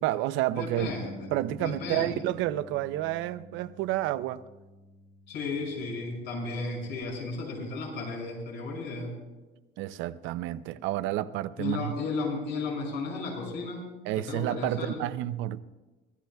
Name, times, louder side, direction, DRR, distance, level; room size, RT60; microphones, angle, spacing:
voice 1, 0.0-0.9 1.3-4.4 9.8-11.9 14.1-15.6, right 14 dB, 75° right, 0.6 m, -30 dB
voice 2, 0.5-1.3 1.6-2.2 5.3-9.1 11.6-13.8 14.2-15.0, left 3 dB, 65° left, 6.3 m, -34 dB
Bass guitar, 0.8-7.0, left 1 dB, 35° right, 3.7 m, -49 dB
25.0 x 17.5 x 2.3 m
cardioid pair, 160°, 20 cm